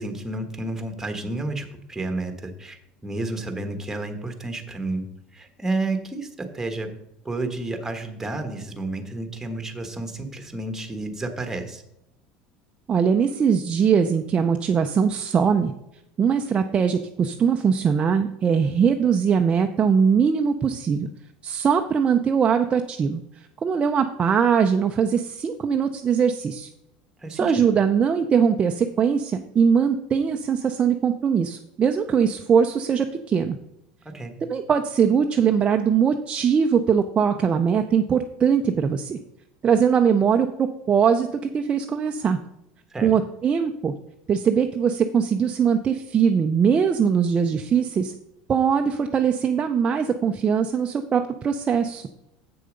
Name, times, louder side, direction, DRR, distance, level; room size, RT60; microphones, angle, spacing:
voice 1, 0.0-5.1 5.3-6.9 7.2-11.8 27.2-27.7 34.1-34.3 42.9-43.1, right 2 dB, 10° right, 6 dB, 1.3 m, -31 dB
voice 2, 12.9-15.7 16.2-21.1 21.4-23.2 23.6-26.7 27.3-33.6 34.5-39.2 39.6-42.4 43.0-43.9 44.3-48.1 48.5-52.1, right 7 dB, 25° right, 5 dB, 0.5 m, -21 dB
7.8 x 6.6 x 5.1 m, 0.83 s
supercardioid pair, 120°, 4 cm